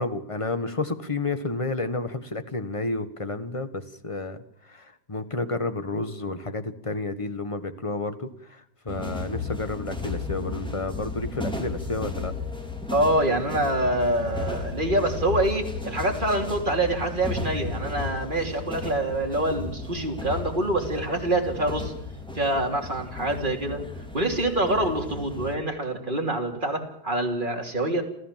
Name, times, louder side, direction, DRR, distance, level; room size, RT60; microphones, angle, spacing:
voice 1, 0.0-4.4 4.6-12.3, left 2 dB, 20° left, 10 dB, 1.5 m, -31 dB
sound 1, 8.9-25.6, left 3 dB, 5° left, 3.5 m, -34 dB
voice 2, 12.9-21.9 22.3-23.8 24.1-28.0, right 1 dB, 30° right, 3 dB, 3.4 m, -25 dB
28.0 x 15.0 x 7.5 m, 0.78 s
omnidirectional pair, 1.8 m